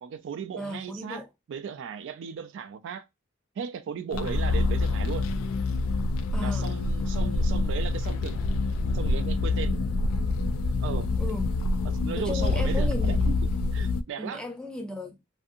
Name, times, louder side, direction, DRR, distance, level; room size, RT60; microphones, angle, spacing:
voice 1, 0.0-1.2 1.5-3.0 3.6-5.3 6.4-8.5 8.9-9.8 10.8-11.1 12.0-13.3 13.7-14.4, right 7 dB, 60° right, 0.3 m, -36 dB
voice 2, 0.6-1.3 6.3-6.7 11.2-11.5 12.1-13.3 14.2-15.2, left 1 dB, 5° left, 0.5 m, -35 dB
sound 1, 4.1-14.0, left 3 dB, 75° left, 0.3 m, -26 dB
2.5 x 2.5 x 2.5 m
head